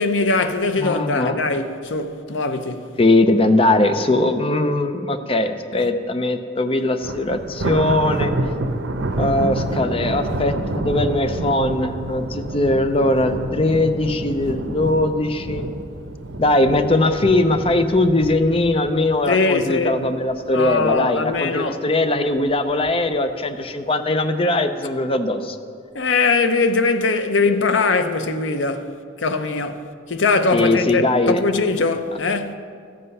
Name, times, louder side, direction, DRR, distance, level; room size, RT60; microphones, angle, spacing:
voice 1, 0.0-2.9 19.3-20.0 20.5-21.8 25.9-28.9 29.2-29.8 30.1-32.6, left 3 dB, 70° left, 0.7 m, -21 dB
voice 2, 0.8-1.4 3.0-8.3 9.2-15.7 16.4-25.6 30.5-31.4, left 2 dB, 30° left, 0.6 m, -20 dB
Thunder, 7.0-20.3 20.7-21.0 21.4-21.5 22.3-22.9, right 1 dB, 75° right, 0.8 m, -28 dB
13.5 x 7.7 x 5.5 m
head